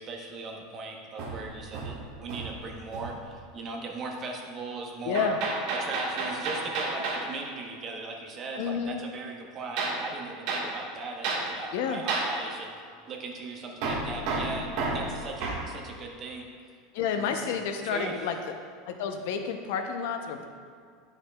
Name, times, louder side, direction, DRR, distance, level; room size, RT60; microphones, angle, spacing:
voice 1, 0.0-5.3 5.8-12.7 13.1-16.4 17.1-17.5 17.9-18.2, right 3 dB, 30° right, 1 dB, 0.9 m, -38 dB
Hammer, 1.2-2.6 2.9-3.3 5.1-7.3 9.8-10.0 10.5-10.7 11.2-11.5 12.1-12.3 13.8-15.7, right 3 dB, 55° right, 1.5 m, -31 dB
voice 2, 5.0-5.4 8.6-9.0 11.7-12.0 16.9-18.4 18.9-20.5, left 6 dB, 70° left, 6 dB, 0.6 m, -30 dB
10.5 x 5.7 x 2.3 m, 2.1 s
supercardioid pair, 150°, 0 cm